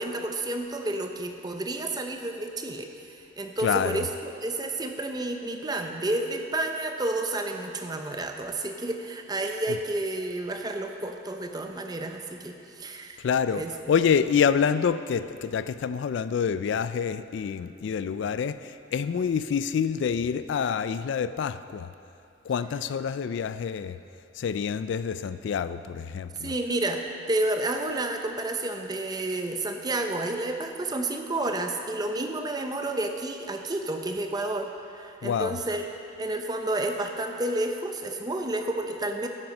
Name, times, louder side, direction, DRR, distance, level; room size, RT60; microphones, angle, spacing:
voice 1, 0.0-13.2 13.5-13.7 26.4-35.9 36.2-39.3, right 2 dB, 20° right, 5 dB, 0.6 m, -30 dB
voice 2, 3.6-4.1 13.2-13.6 13.9-21.9 22.5-24.0 24.4-26.5 35.2-35.6, left 7 dB, 65° left, 13 dB, 0.3 m, -27 dB
12.0 x 7.7 x 5.4 m, 2.6 s
head